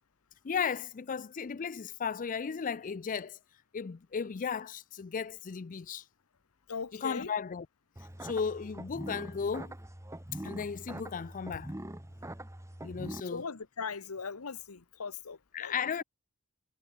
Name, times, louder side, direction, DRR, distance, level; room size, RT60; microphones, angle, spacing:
voice 1, 0.4-3.4 3.7-6.0 6.9-7.7 8.2-9.7 10.4-11.7 12.8-13.5 15.5-16.0, left 6 dB, 40° left, 0.4 m, -35 dB
voice 2, 6.7-7.3 13.2-15.7, left 5 dB, 90° left, 1.1 m, -39 dB
sound 1, 8.0-13.2, right 1 dB, 15° right, 1.4 m, -43 dB
head